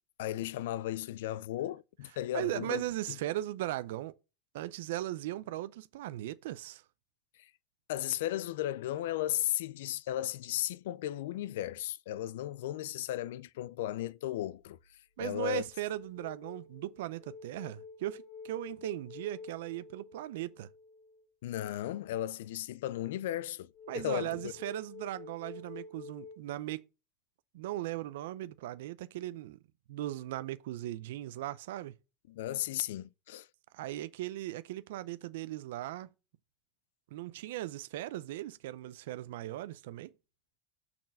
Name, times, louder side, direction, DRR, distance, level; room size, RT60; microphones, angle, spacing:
voice 1, 0.2-2.8 3.1-3.2 7.4-7.5 7.9-14.8 15.2-15.6 21.4-24.5 32.3-33.5, left 13 dB, 75° left, 0.4 m, -35 dB
voice 2, 2.3-4.2 4.5-6.8 15.2-20.7 23.9-26.8 27.5-29.6 29.9-31.9 33.7-36.1 37.1-40.1, right 14 dB, 75° right, 0.5 m, -38 dB
sound 1, 14.6-14.9 15.3-21.2 23.7-26.4, left 4 dB, 45° left, 1.4 m, -50 dB
6.4 x 4.3 x 5.6 m
supercardioid pair, 150°, 0 cm